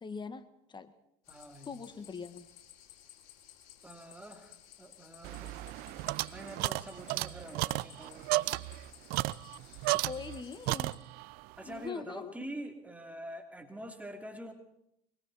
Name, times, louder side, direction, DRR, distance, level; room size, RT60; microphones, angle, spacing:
voice 1, 0.0-0.9 1.7-2.5 10.1-10.9 11.7-12.3, left 5 dB, 25° left, 12 dB, 1.8 m, -42 dB
sound 1, 1.3-11.0, left 11 dB, 65° left, 6.0 m, -56 dB
voice 2, 1.3-1.7 3.8-8.4 9.8-10.3 11.6-14.5, right 1 dB, 10° right, 5 dB, 3.2 m, -46 dB
sound 2, 5.2-10.4 10.7-11.3, right 20 dB, 60° right, 0.7 m, -33 dB
25.0 x 24.5 x 4.3 m, 0.77 s
hypercardioid pair, 80°, 18 cm